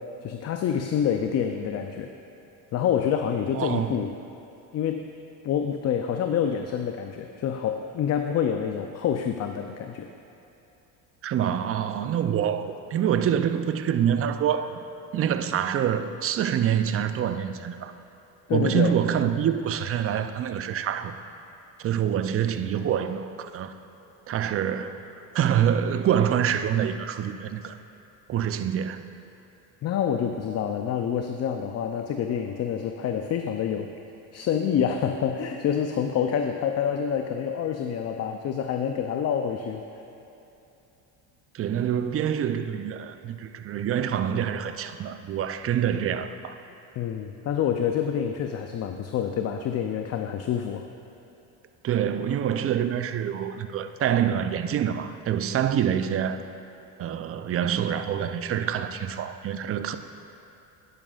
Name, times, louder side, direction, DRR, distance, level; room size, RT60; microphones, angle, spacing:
voice 1, 0.2-2.1 2.7-4.1 4.7-5.1 5.4-10.1 18.5-19.0 29.8-33.9 34.3-39.9 47.0-50.8, left 8 dB, 40° left, 5 dB, 0.5 m, -27 dB
voice 2, 3.5-4.0 11.2-14.8 15.1-17.9 18.5-21.1 21.8-23.7 24.3-25.0 25.3-27.8 28.3-29.0 41.5-46.6 51.8-56.4 57.0-60.0, right 9 dB, 35° right, 10 dB, 0.5 m, -26 dB
11.0 x 10.0 x 2.4 m, 2.9 s
supercardioid pair, 90°, 41 cm